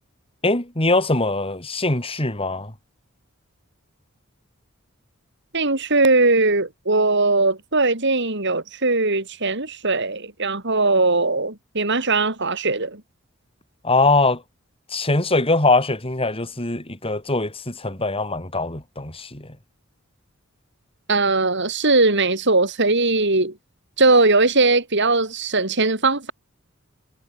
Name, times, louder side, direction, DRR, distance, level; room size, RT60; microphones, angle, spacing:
voice 1, 0.4-2.7 13.8-14.4 14.9-19.5, left 2 dB, 25° left, 5.8 m, -22 dB
voice 2, 5.5-13.0 21.1-23.5 24.0-26.3, right 3 dB, 60° right, 6.2 m, -19 dB
head